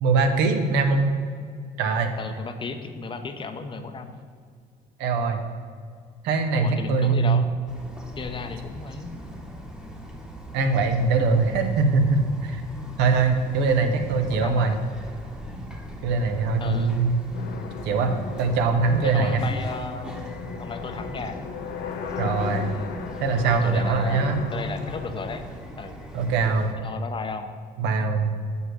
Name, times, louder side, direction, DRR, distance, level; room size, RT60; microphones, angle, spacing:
voice 1, 0.0-1.1 1.8-2.1 5.0-5.4 6.2-7.4 10.5-12.6 13.0-14.7 16.0-17.1 17.8-19.4 22.2-22.7 23.2-24.4 26.1-26.8 27.8-28.4, right 4 dB, 90° right, 6 dB, 0.9 m, -22 dB
voice 2, 2.2-4.2 6.6-7.5 8.2-9.2 14.3-14.8 16.6-17.0 18.8-20.3 20.6-21.4 22.7-23.0 23.4-25.4 25.8-26.0 26.8-27.5, left 4 dB, 30° left, 7 dB, 0.7 m, -34 dB
Bird vocalization bird call bird song, 7.7-26.7, equal, 5° right, 1.0 m, -40 dB
sound 1, 17.3-25.4, left 6 dB, 75° left, 0.7 m, -36 dB
6.3 x 5.5 x 6.2 m, 2.1 s
cardioid pair, 110°, 17 cm